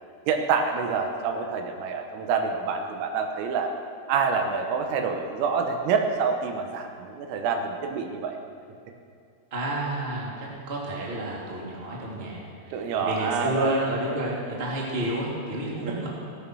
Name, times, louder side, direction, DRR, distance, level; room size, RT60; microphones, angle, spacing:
voice 1, 0.3-3.7 4.1-8.4 12.7-13.7 15.8-16.1, right 5 dB, 80° right, 4 dB, 3.7 m, -27 dB
voice 2, 9.5-16.1, right 1 dB, 20° right, -4 dB, 1.8 m, -30 dB
17.0 x 12.5 x 6.3 m, 2.3 s
omnidirectional pair, 6.0 m